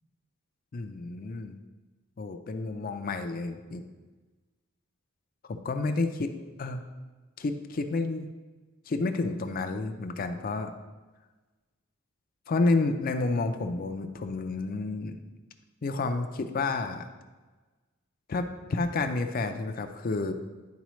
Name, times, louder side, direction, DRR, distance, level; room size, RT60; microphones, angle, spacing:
voice 1, 0.7-1.6 2.2-3.8 5.5-6.3 6.6-6.8 7.4-8.3 8.9-10.7 12.5-15.2 15.8-17.0 18.3-20.3, left 3 dB, 45° left, 7 dB, 0.4 m, -30 dB
10.5 x 4.1 x 3.1 m, 1.3 s
head